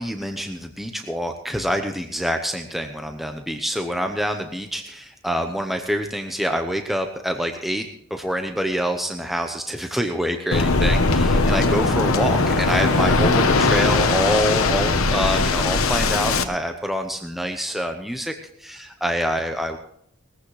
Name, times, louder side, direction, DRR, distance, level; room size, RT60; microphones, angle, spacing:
voice 1, 0.0-18.3 18.6-19.8, equal, ahead, 4 dB, 0.8 m, -26 dB
Waves surf, 10.5-16.4, left 3 dB, 80° left, 1.1 m, -19 dB
20.0 x 14.5 x 3.2 m, 0.71 s
head